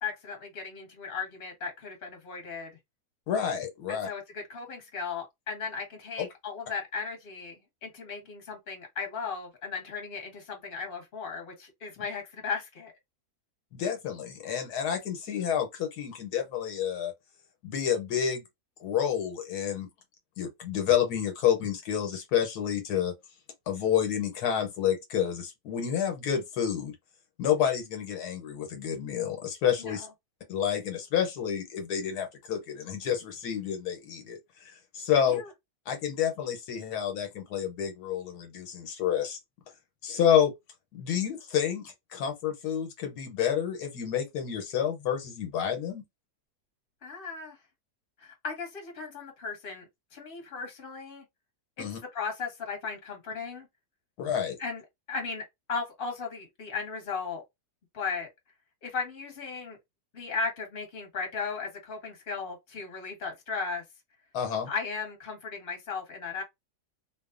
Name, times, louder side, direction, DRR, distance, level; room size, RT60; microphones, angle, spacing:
voice 1, 0.0-2.7 3.9-12.9 29.8-30.0 35.3-35.5 47.0-47.6 48.2-51.2 51.8-51.9 52.1-53.7 54.6-54.8 55.1-57.4 57.9-58.3 58.8-59.8 60.1-63.8 64.7-66.4, left 5 dB, 40° left, 1.1 m, -36 dB
voice 2, 3.3-4.1 6.2-6.3 13.7-17.1 17.6-18.4 18.8-19.9 20.4-23.1 23.7-26.9 27.4-30.1 30.5-35.4 35.9-39.4 40.0-40.5 40.9-46.0 51.8-52.0 54.2-54.6 64.3-64.7, left 9 dB, 85° left, 1.3 m, -29 dB
2.9 x 2.0 x 2.4 m
omnidirectional pair, 1.6 m